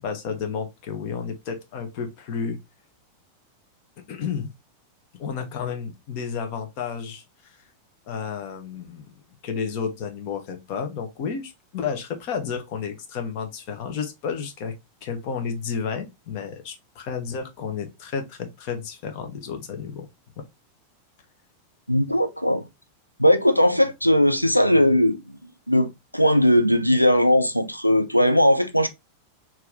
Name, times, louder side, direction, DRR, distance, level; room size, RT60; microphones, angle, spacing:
voice 1, 0.0-2.6 4.1-4.5 5.2-7.6 8.1-9.1 9.4-14.7 15.0-20.1 20.4-20.5, left 6 dB, 45° left, 1.1 m, -31 dB
voice 2, 21.9-22.6 23.2-25.4 25.7-28.9, equal, 90° left, 0.5 m, -19 dB
4.6 x 2.9 x 3.4 m
figure-of-eight pair, 90°, 0 cm